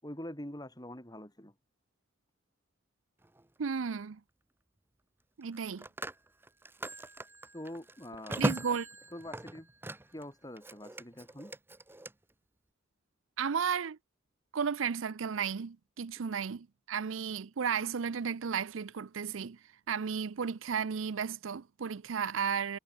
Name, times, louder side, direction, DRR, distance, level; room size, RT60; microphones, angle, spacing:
voice 1, 0.0-1.5 7.5-8.5 9.1-9.7 10.1-11.5, left 1 dB, 20° left, 5.5 m, -44 dB
Telephone, 3.2-3.5 5.4-10.3 10.6-12.1, right 1 dB, 10° right, 0.7 m, -39 dB
voice 2, 3.6-4.2 5.4-5.8 8.4-8.9 13.4-14.0 14.5-19.6 19.9-22.8, right 6 dB, 70° right, 0.5 m, -34 dB
head